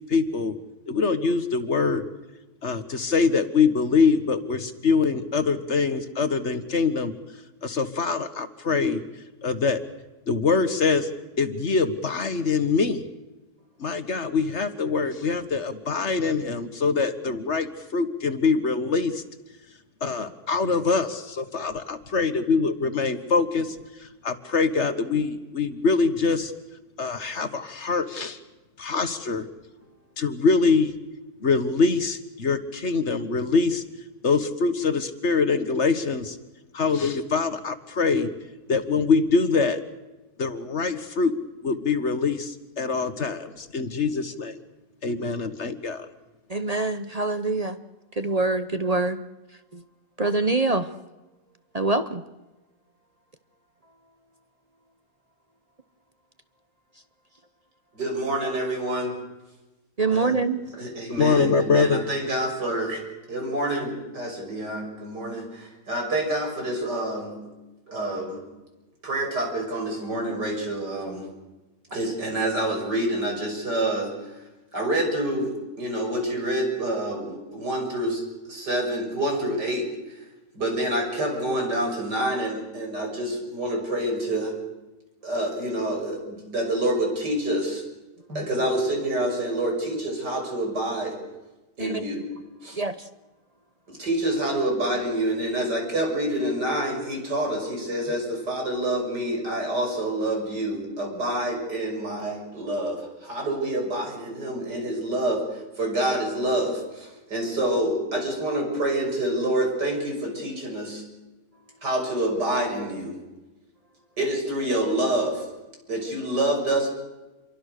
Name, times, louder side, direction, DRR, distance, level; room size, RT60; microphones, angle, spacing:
voice 1, 0.1-0.5 0.9-2.0 2.6-7.1 7.6-9.0 9.4-9.8 10.3-11.1 11.4-13.0 13.8-19.1 20.0-23.7 24.2-26.5 27.0-28.4 28.8-29.4 30.2-30.9 31.4-33.8 34.2-36.3 36.7-38.3 38.7-39.8 40.4-41.3 41.6-44.5 45.0-46.0 61.1-62.0, left 4 dB, 45° left, 10 dB, 1.7 m, -24 dB
voice 2, 46.5-47.8 48.2-49.2 49.7-49.8 50.2-50.9 51.7-52.2 60.0-60.6 91.8-92.0 92.8-93.0, right 3 dB, 35° right, 11 dB, 0.7 m, -24 dB
voice 3, 57.9-59.2 60.1-60.4 60.7-63.0 63.3-67.5 67.9-68.4 69.0-71.3 71.9-74.4 74.7-80.2 80.5-84.5 85.2-87.8 88.3-91.2 91.8-92.2 92.6-92.8 93.9-111.0 111.8-113.2 114.2-115.5 115.9-116.9, right 1 dB, 80° right, 2 dB, 6.9 m, -27 dB
28.0 x 23.5 x 6.7 m, 1.1 s
omnidirectional pair, 1.8 m